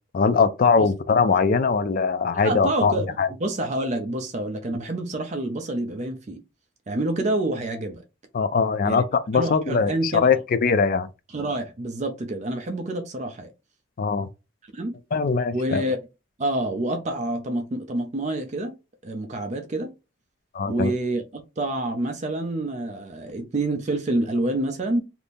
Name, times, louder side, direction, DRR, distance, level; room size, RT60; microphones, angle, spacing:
voice 1, 0.1-3.3 8.3-11.1 14.0-14.3 15.1-15.8 20.5-20.9, left 5 dB, 45° left, 0.4 m, -21 dB
voice 2, 2.4-6.4 6.9-8.0 8.8-9.0 9.3-10.3 11.3-13.5 14.7-15.0 15.5-16.0 16.4-18.7 19.0-19.9 20.7-25.0, right 1 dB, 35° right, 0.4 m, -27 dB
2.6 x 2.6 x 3.4 m
head